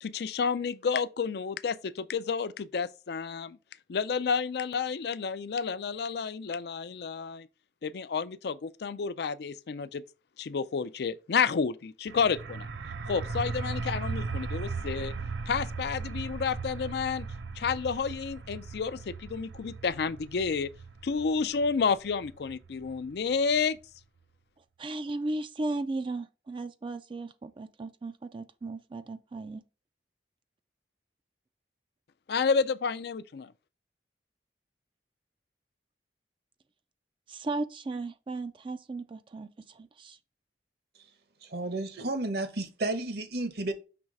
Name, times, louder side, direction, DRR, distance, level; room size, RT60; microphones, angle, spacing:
voice 1, 0.0-3.6 3.9-7.5 7.8-10.0 10.4-12.7 13.1-15.1 15.5-17.3 17.6-20.7 21.0-23.8 32.3-33.5, left 5 dB, 65° left, 0.4 m, -30 dB
sound 1, 12.1-23.5, right 4 dB, 90° right, 0.7 m, -38 dB
voice 2, 24.8-29.6 37.3-40.2, right 2 dB, 30° right, 0.3 m, -36 dB
voice 3, 41.4-43.7, right 2 dB, 60° right, 1.0 m, -32 dB
5.9 x 3.2 x 5.2 m
head